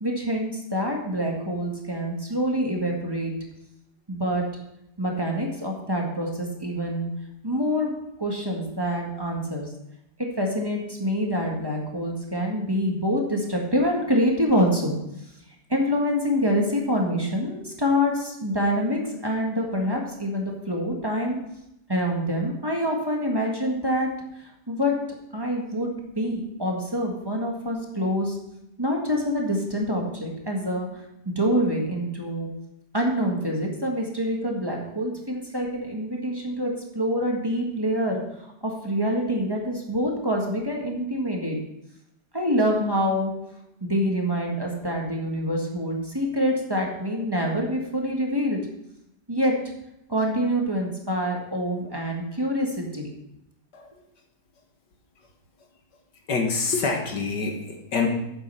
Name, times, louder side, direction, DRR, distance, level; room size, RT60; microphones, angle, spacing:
voice 1, 0.0-3.3 4.1-4.4 5.0-7.1 7.4-7.9 8.2-9.7 10.2-15.0 15.7-21.4 21.9-24.1 24.7-24.9 25.3-28.4 28.8-32.5 32.9-38.2 38.6-41.6 42.3-43.3 43.8-48.6 49.3-49.5 50.1-53.1, equal, 15° right, -1 dB, 1.7 m, -26 dB
voice 2, 56.3-58.1, left 4 dB, 80° left, 3 dB, 2.2 m, -26 dB
9.0 x 7.6 x 5.7 m, 0.83 s
omnidirectional pair, 1.8 m